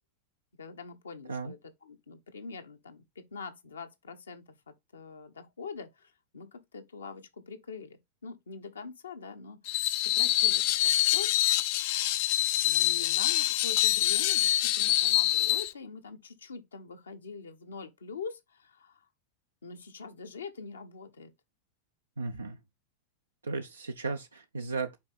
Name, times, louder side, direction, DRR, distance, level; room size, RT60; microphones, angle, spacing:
voice 1, 0.6-11.3 12.6-19.0 19.6-21.3, left 5 dB, 70° left, 1.2 m, -44 dB
Screech, 9.7-15.7, left 14 dB, 45° left, 0.5 m, -25 dB
voice 2, 22.2-22.6 23.4-25.0, right 3 dB, 75° right, 0.6 m, -35 dB
5.8 x 4.4 x 3.9 m
figure-of-eight pair, 90°, 0 cm